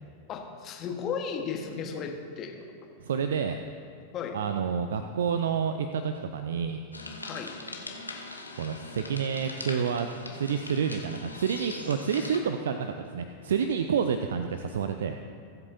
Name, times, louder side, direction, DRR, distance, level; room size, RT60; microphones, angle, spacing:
voice 1, 0.3-2.7 4.1-4.4 7.2-7.5, left 6 dB, 30° left, 3 dB, 1.4 m, -35 dB
voice 2, 3.0-3.6 4.3-6.8 8.6-10.1 10.3-15.2, right 7 dB, 60° right, 7 dB, 0.5 m, -29 dB
sound 1, 6.9-12.4, left 2 dB, 85° left, 1.0 m, -41 dB
20.5 x 8.0 x 2.7 m, 2.3 s
figure-of-eight pair, 90°, 0 cm